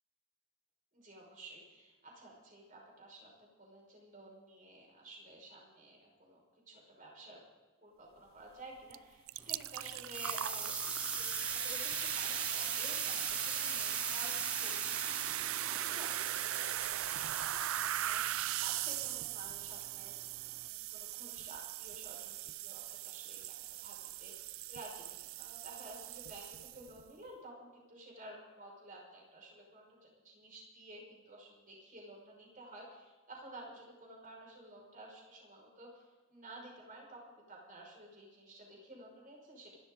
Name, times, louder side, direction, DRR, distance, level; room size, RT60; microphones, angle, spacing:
voice 1, 0.9-7.4 7.8-14.9 15.1-17.0 17.4-20.1 20.6-23.5 23.8-39.7, right 1 dB, 40° right, -1 dB, 5.6 m, -53 dB
sound 1, 8.9-9.0 9.3-27.0, right 14 dB, 80° right, 0.4 m, -39 dB
sound 2, 9.4-20.7, right 3 dB, 5° right, 0.4 m, -41 dB
27.0 x 12.5 x 3.9 m, 1.3 s
head